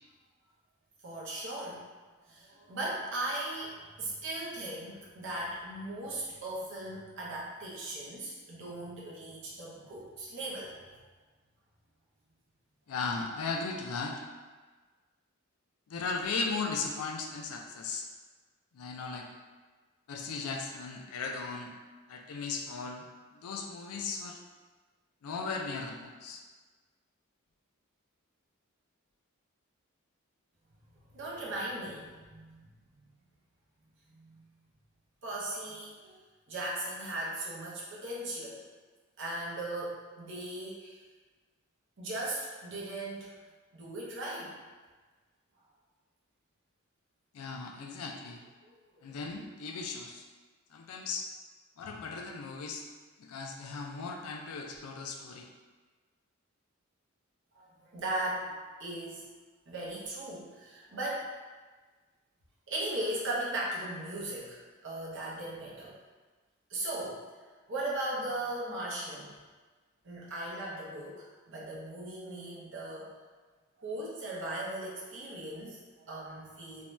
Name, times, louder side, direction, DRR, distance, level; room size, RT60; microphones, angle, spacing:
voice 1, 1.0-1.8 2.3-10.8 31.1-32.6 34.1-34.4 35.2-36.2 36.5-38.6 39.2-41.0 42.0-43.3 43.7-44.5 48.6-48.7 57.6-58.5 58.8-59.3 59.7-61.3 62.7-66.0 66.7-67.2 67.7-69.3 70.0-73.2 73.8-76.8, right 1 dB, 55° right, -5 dB, 0.7 m, -38 dB
voice 2, 12.9-14.2 15.9-18.1 18.7-19.3 20.1-21.7 22.1-23.1 23.3-24.4 25.2-26.4 47.3-48.4 49.0-50.2 50.7-51.3 51.8-52.8 53.2-55.5, left 4 dB, 90° left, 3 dB, 0.4 m, -37 dB
2.6 x 2.2 x 3.0 m, 1.3 s
head